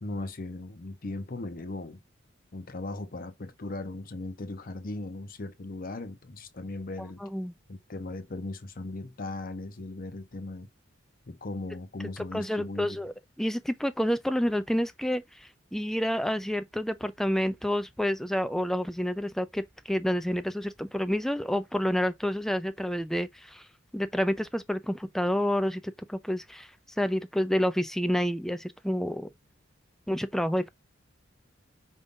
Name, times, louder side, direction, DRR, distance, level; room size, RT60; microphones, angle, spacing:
voice 1, 0.0-2.0 2.5-7.2 7.7-10.7 11.3-13.0, left 2 dB, 45° left, 0.7 m, -38 dB
voice 2, 7.2-7.5 12.3-23.7 23.9-26.7 27.0-29.3 30.1-30.7, equal, ahead, 0.4 m, -29 dB
5.3 x 2.5 x 3.6 m
head